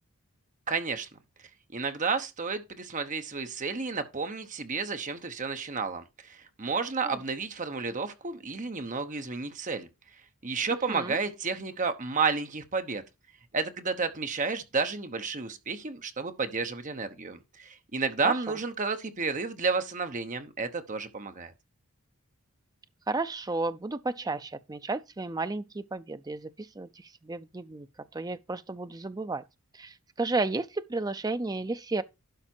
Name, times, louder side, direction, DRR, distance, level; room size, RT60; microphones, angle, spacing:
voice 1, 0.7-1.1 1.7-9.9 10.4-13.0 13.5-21.5, right 4 dB, 35° right, 1.0 m, -31 dB
voice 2, 23.1-26.5 26.8-26.9 27.2-27.9 28.1-29.4 29.8-32.0, right 3 dB, 15° right, 0.5 m, -32 dB
11.5 x 4.9 x 4.5 m
head